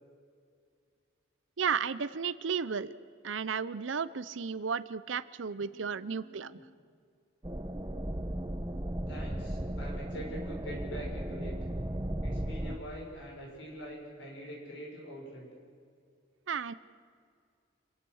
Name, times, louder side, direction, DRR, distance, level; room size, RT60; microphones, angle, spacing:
voice 1, 1.6-2.9 3.2-6.6 16.5-16.7, right 6 dB, 75° right, 16 dB, 0.6 m, -33 dB
voice 2, 5.6-6.6 9.1-11.5 12.2-15.5, equal, 65° left, -2 dB, 6.1 m, -44 dB
sound 1, 7.4-12.8, right 1 dB, 20° right, 0.8 m, -36 dB
28.5 x 15.5 x 6.4 m, 2.3 s
head